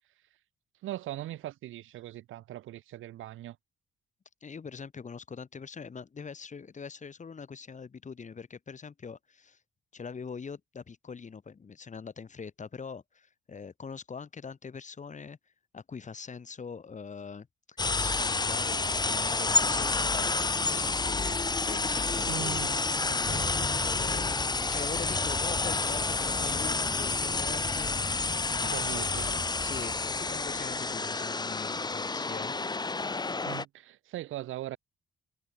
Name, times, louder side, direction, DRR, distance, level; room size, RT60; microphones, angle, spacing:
voice 1, 0.8-3.6 22.3-22.8 23.0-23.6 28.7-29.3 33.5-34.8, right 14 dB, 85° right, 7.3 m, -40 dB
voice 2, 4.4-9.6 9.9-15.4 15.7-22.6 23.8-32.6, left 5 dB, 40° left, 4.3 m, -43 dB
sound 1, 17.8-33.6, left 3 dB, 20° left, 1.5 m, -29 dB
cardioid pair, 90°, 20 cm